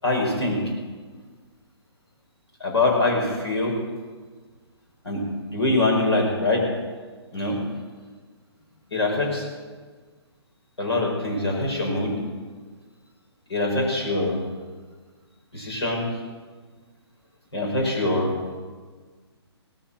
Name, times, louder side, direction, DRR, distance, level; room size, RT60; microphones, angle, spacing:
voice 1, 0.0-0.6 2.6-3.7 5.0-5.2 5.5-6.6 7.3-7.6 8.9-9.4 10.8-12.1 13.5-14.4 15.5-16.0 17.5-18.3, left 2 dB, 70° left, -1 dB, 5.4 m, -23 dB
18.5 x 7.4 x 7.7 m, 1.5 s
figure-of-eight pair, 130°, 14 cm